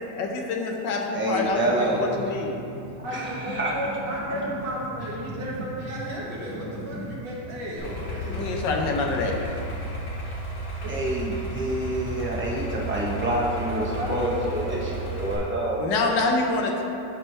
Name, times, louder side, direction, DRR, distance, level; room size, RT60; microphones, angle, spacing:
voice 1, 0.0-1.6 1.9-2.6 8.3-9.3 15.8-16.8, left 3 dB, 75° left, 1 dB, 1.4 m, -26 dB
voice 2, 1.1-2.1 3.1-3.7 8.1-8.2 10.9-15.8, right 1 dB, 10° right, -6 dB, 0.7 m, -27 dB
sound 1, 1.4-9.8, equal, 20° left, 1.3 m, -39 dB
voice 3, 3.0-8.9 10.8-11.1 13.6-15.0 15.4-15.5 15.7-16.2, equal, 70° right, -6 dB, 2.0 m, -34 dB
Idling, 7.8-15.3, right 2 dB, 40° left, 1.8 m, -33 dB
11.5 x 4.3 x 3.1 m, 2.7 s
omnidirectional pair, 2.0 m